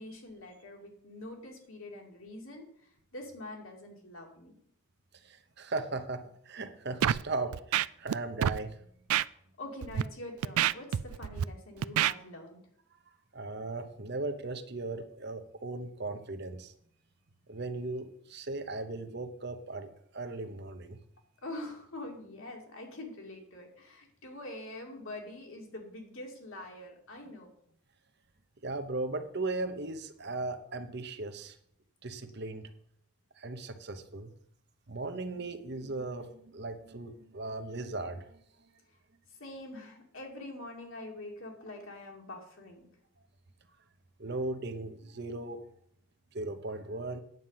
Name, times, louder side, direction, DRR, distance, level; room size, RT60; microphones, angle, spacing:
voice 1, 0.0-4.6 9.6-12.6 21.4-27.5 39.4-42.9, left 1 dB, 70° left, 1 dB, 2.5 m, -45 dB
voice 2, 5.2-8.8 13.3-16.7 17.5-21.0 28.6-31.6 32.0-32.7 33.4-34.3 34.9-38.4 44.2-45.6 46.3-47.2, right 2 dB, 50° right, 8 dB, 0.9 m, -37 dB
Scratching (performance technique), 7.0-7.2 7.5-8.1 8.4-8.6 9.1-9.2 9.8-10.0 10.4-11.4 11.8-12.1, right 10 dB, 80° right, 0.3 m, -27 dB
9.3 x 7.8 x 5.7 m, 0.67 s
head